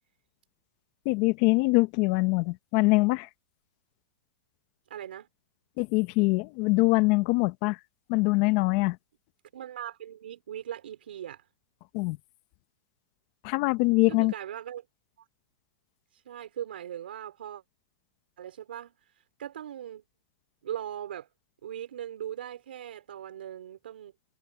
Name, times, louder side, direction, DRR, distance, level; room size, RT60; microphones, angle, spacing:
voice 1, 1.0-3.3 5.8-7.8 8.1-9.0 11.9-12.2 13.4-14.3, left 25 dB, 40° left, 0.9 m, -23 dB
voice 2, 4.9-5.3 9.5-11.4 14.1-14.8 15.2-15.3 16.1-17.6 18.4-18.9 19.4-20.0 20.6-21.3 21.6-24.1, right 10 dB, 85° right, 4.4 m, -39 dB
supercardioid pair, 150°, 5 cm